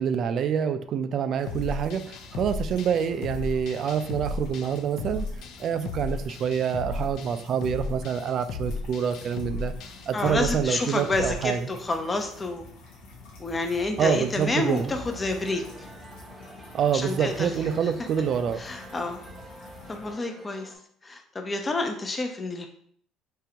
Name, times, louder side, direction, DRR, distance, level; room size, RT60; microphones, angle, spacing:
voice 1, 0.0-5.3 5.6-9.7 10.1-11.7 14.0-14.9 16.7-18.6, right 7 dB, 50° right, 10 dB, 0.3 m, -26 dB
sound 1, 1.4-20.1, left 2 dB, 85° left, 0.9 m, -48 dB
sound 2, 1.5-11.3, left 3 dB, 65° left, 0.4 m, -35 dB
voice 2, 10.1-12.6 13.4-15.6 16.9-17.5 17.8-17.9 18.6-19.2 19.9-20.7 21.0-22.7, left 2 dB, 25° left, 5 dB, 0.6 m, -29 dB
sound 3, 14.1-20.8, right 1 dB, 15° right, 0.7 m, -47 dB
3.6 x 3.3 x 2.8 m, 0.62 s
supercardioid pair, 100°, 0 cm